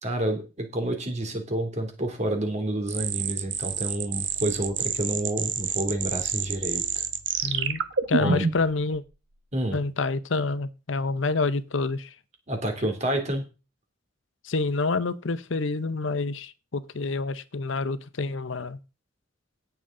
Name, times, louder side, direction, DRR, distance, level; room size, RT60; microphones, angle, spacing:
voice 1, 0.0-7.0 7.4-7.5 8.2-8.4 9.5-9.8 12.5-13.4, right 1 dB, 35° right, 3.0 m, -29 dB
sound 1, 2.9-8.7, right 7 dB, 65° right, 1.2 m, -28 dB
voice 2, 7.4-9.0 9.7-12.1 14.4-18.8, left 3 dB, 70° left, 0.8 m, -28 dB
17.5 x 7.1 x 3.8 m
head